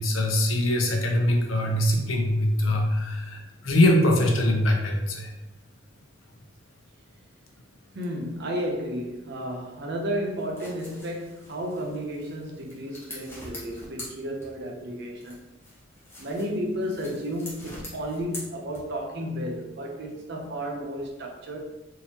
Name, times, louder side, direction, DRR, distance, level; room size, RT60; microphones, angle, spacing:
voice 1, 0.0-5.3, left 1 dB, 75° left, 0.7 m, -23 dB
voice 2, 7.9-15.4 16.2-21.6, equal, 60° right, 0.7 m, -32 dB
sound 1, 10.3-14.8 15.2-19.1, left 1 dB, 10° left, 0.9 m, -44 dB
3.7 x 2.9 x 2.8 m
head